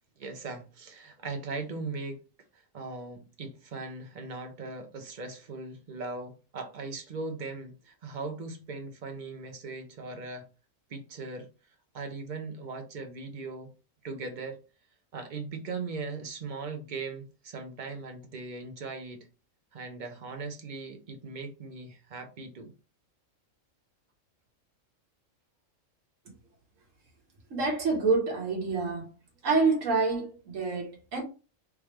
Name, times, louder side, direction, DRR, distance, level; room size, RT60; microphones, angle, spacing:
voice 1, 0.2-2.2 2.5-10.5 10.9-11.5 11.9-13.7 14.0-14.6 15.1-19.3 19.7-22.7, right 3 dB, 45° right, 0.7 m, -39 dB
voice 2, 27.5-29.1 29.4-31.2, right 4 dB, 75° right, 1.6 m, -27 dB
3.5 x 3.2 x 3.1 m
omnidirectional pair, 1.4 m